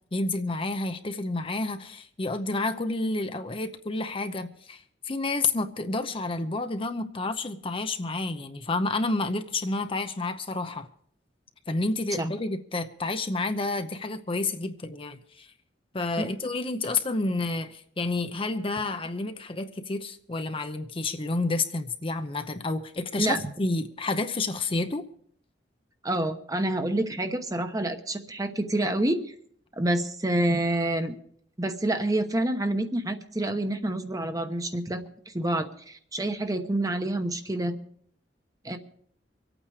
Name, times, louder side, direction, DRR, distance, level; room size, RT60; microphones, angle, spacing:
voice 1, 0.1-10.9 11.7-15.5 15.9-25.1, left 3 dB, 30° left, 8 dB, 0.8 m, -30 dB
voice 2, 26.0-29.3 29.8-31.1 31.6-37.8 38.6-38.8, right 1 dB, 20° right, 7 dB, 1.0 m, -28 dB
25.0 x 8.9 x 4.9 m, 0.62 s
head